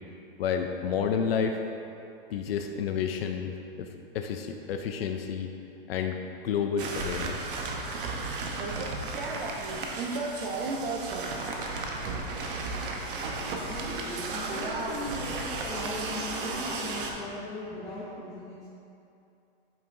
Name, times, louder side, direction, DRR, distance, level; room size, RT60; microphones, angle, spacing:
voice 1, 0.4-1.6 2.3-3.9 4.1-5.5 5.9-7.5, left 7 dB, 80° left, 5 dB, 0.5 m, -30 dB
sound 1, 6.8-17.1, right 3 dB, 60° right, 0.9 m, -33 dB
voice 2, 13.4-18.7, left 2 dB, 10° left, -10 dB, 0.6 m, -39 dB
8.2 x 5.4 x 2.6 m, 2.7 s
hypercardioid pair, 160°, 30 cm